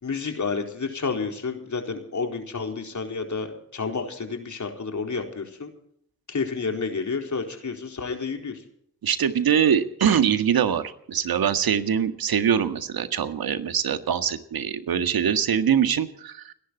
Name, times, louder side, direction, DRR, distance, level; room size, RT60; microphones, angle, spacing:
voice 1, 0.0-5.7 6.3-8.6, left 4 dB, 45° left, 3 dB, 4.3 m, -30 dB
voice 2, 9.0-16.5, right 8 dB, 60° right, 9 dB, 1.8 m, -23 dB
30.0 x 11.0 x 4.1 m, 0.70 s
hypercardioid pair, 40°, 40 cm